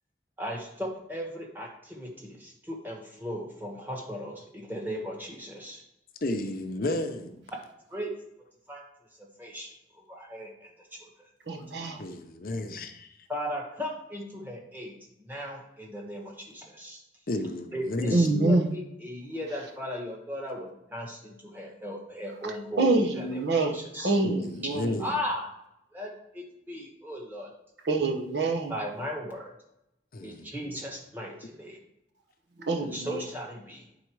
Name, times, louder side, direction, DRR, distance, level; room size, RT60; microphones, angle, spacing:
voice 1, 0.4-5.8 7.9-8.1 8.7-8.8 9.2-9.7 10.1-11.1 13.3-17.0 17.7-24.1 25.0-25.5 25.9-27.5 28.7-29.5 30.2-31.8 32.8-33.8, equal, 10° right, 1.4 m, -37 dB
voice 2, 6.2-7.4 12.0-13.1 17.3-18.3 24.2-25.1 30.1-30.8, left 1 dB, 50° left, 0.6 m, -32 dB
voice 3, 11.5-12.0 18.1-18.7 22.8-23.8 24.0-24.9 27.9-28.7 32.6-33.2, right 3 dB, 70° right, 1.0 m, -25 dB
8.6 x 4.0 x 4.7 m
head